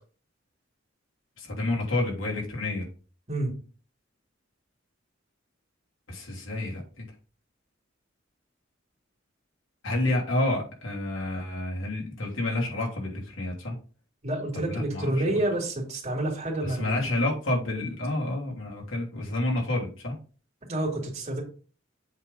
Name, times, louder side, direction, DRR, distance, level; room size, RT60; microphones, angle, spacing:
voice 1, 1.4-2.9 6.1-7.0 9.8-13.8 14.5-15.4 16.6-20.1, left 1 dB, 90° left, -2 dB, 3.2 m, -29 dB
voice 2, 14.2-17.0 20.7-21.4, right 1 dB, 35° right, -2 dB, 2.5 m, -29 dB
8.0 x 3.7 x 5.4 m, 0.37 s
head